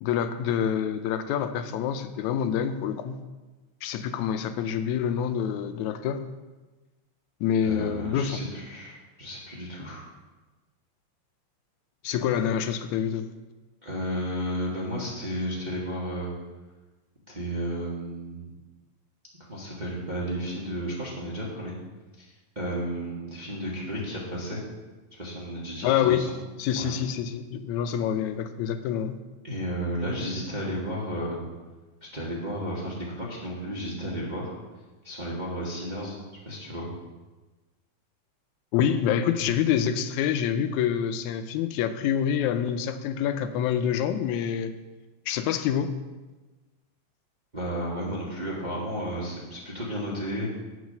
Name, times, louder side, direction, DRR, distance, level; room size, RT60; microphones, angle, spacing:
voice 1, 0.0-3.2 3.8-6.3 7.4-8.4 12.0-13.3 25.8-26.3 26.6-29.1 38.7-44.7 45.3-46.0, left 9 dB, 85° left, 9 dB, 1.9 m, -26 dB
voice 2, 7.6-10.0 13.8-16.3 17.3-18.5 19.5-21.7 22.2-24.6 25.1-26.4 26.7-26.9 29.4-31.4 32.0-34.5 35.0-36.2 36.4-36.9 47.5-50.6, equal, 25° right, -5 dB, 1.1 m, -33 dB
8.2 x 6.3 x 6.5 m, 1.2 s
omnidirectional pair, 3.3 m